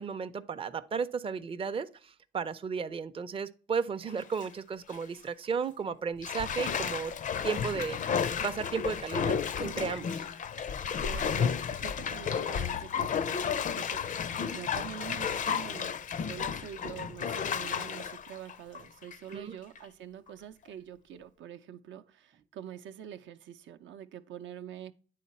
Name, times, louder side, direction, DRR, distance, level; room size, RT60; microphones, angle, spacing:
voice 1, 0.0-7.1 7.4-10.3 19.3-19.5, right 6 dB, 25° right, 0.5 m, -34 dB
Bathtub (filling or washing), 4.0-4.5 4.9-5.0 6.2-19.3 19.8-19.9, left 7 dB, 40° left, 0.4 m, -32 dB
voice 2, 11.0-14.1 14.5-24.9, right 10 dB, 70° right, 0.6 m, -45 dB
9.2 x 3.9 x 4.2 m
cardioid pair, 90°, 20 cm